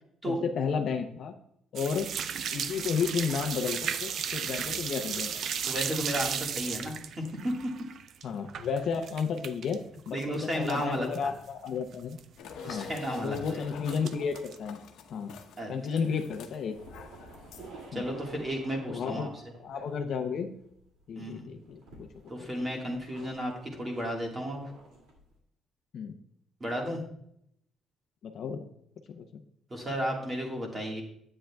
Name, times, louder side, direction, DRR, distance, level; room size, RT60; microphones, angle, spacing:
voice 1, 0.3-1.4 1.7-2.1 2.5-5.4 8.2-9.8 10.1-12.2 12.7-12.9 13.2-14.8 15.1-15.3 15.7-16.8 17.9-18.0 18.9-19.3 19.6-20.5 21.1-22.1 25.9-26.1 28.2-28.6 29.1-29.2, left 6 dB, 50° left, 5 dB, 0.6 m, -32 dB
sound 1, 1.7-9.8 10.1-10.8 11.1-11.2 11.7-11.8 11.9-12.2 13.0-13.5 13.9-14.5, right 7 dB, 50° right, 0.4 m, -35 dB
voice 2, 5.7-7.5 10.1-11.3 12.6-13.6 15.6-16.0 17.9-19.3 21.1-21.5 22.3-24.6 26.6-27.0 29.7-31.0, equal, 20° right, 0 dB, 1.6 m, -33 dB
sound 2, 12.4-17.9, left 6 dB, 85° left, 0.9 m, -46 dB
sound 3, 16.7-21.1 21.4-25.3, right 2 dB, 90° right, 2.3 m, -50 dB
10.0 x 8.6 x 2.3 m, 0.72 s
cardioid pair, 180°, 0 cm